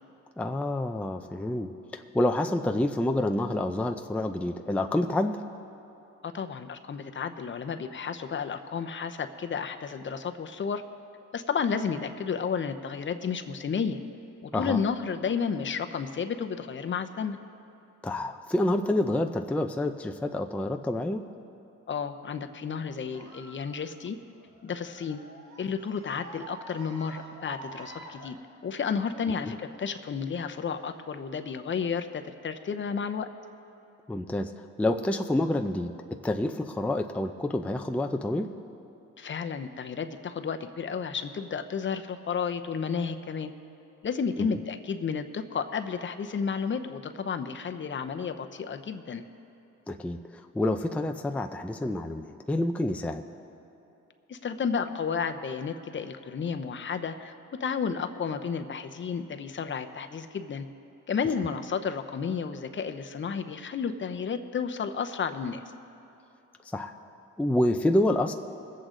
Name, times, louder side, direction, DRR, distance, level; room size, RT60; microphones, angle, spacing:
voice 1, 0.4-5.4 14.5-14.8 18.0-21.2 29.4-29.5 34.1-35.9 36.2-38.5 44.4-44.6 49.9-53.2 66.7-66.9 67.4-68.3, left 1 dB, 5° left, 5 dB, 0.5 m, -28 dB
voice 2, 6.2-10.8 11.3-14.0 14.4-17.4 21.9-24.2 24.6-25.2 25.6-28.4 28.6-33.3 39.2-43.5 44.0-49.2 54.3-57.3 57.6-60.7 61.1-65.6, left 6 dB, 40° left, 7 dB, 0.8 m, -32 dB
sound 1, 23.1-28.3, right 2 dB, 80° right, 1.7 m, -47 dB
22.0 x 8.1 x 3.9 m, 3.0 s
cardioid pair, 90°, 30 cm